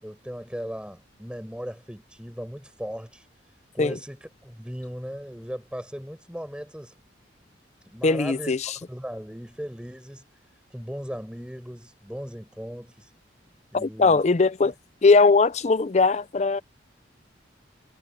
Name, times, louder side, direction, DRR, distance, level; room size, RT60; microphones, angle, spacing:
voice 1, 0.0-3.2 3.7-6.9 7.9-8.5 8.9-10.3 10.7-13.1 13.7-14.2, equal, 5° right, 5.1 m, -37 dB
voice 2, 8.0-8.8 13.7-14.7 15.0-16.6, left 4 dB, 35° left, 0.5 m, -20 dB
head